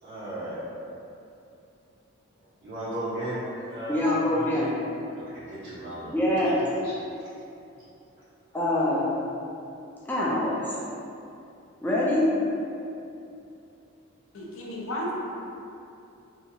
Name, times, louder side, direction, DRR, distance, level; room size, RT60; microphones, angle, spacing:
voice 1, 0.0-0.6 2.6-4.0 4.3-4.7 5.3-6.9, right 1 dB, 55° right, -11 dB, 0.6 m, -36 dB
voice 2, 3.9-4.7 6.0-6.6 8.5-9.1 10.1-10.8 11.8-12.3, left 1 dB, 10° left, -7 dB, 0.3 m, -24 dB
voice 3, 14.3-15.1, equal, 75° left, -3 dB, 0.5 m, -33 dB
2.8 x 2.3 x 2.6 m, 2.7 s
head